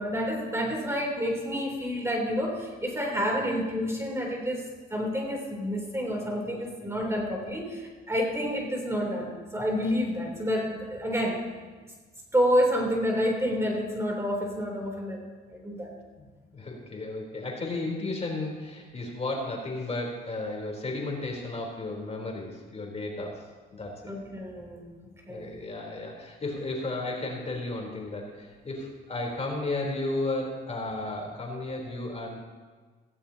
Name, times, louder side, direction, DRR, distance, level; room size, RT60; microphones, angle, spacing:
voice 1, 0.0-4.6 4.9-11.4 12.3-15.3 15.5-15.9 24.1-24.9 25.3-25.5, equal, 15° right, -1 dB, 3.3 m, -29 dB
voice 2, 6.2-7.2 16.2-16.3 16.5-23.3 23.7-24.0 25.3-32.4, left 2 dB, 35° left, -1 dB, 3.7 m, -34 dB
17.0 x 16.5 x 2.9 m, 1.4 s
cardioid pair, 90°, 20 cm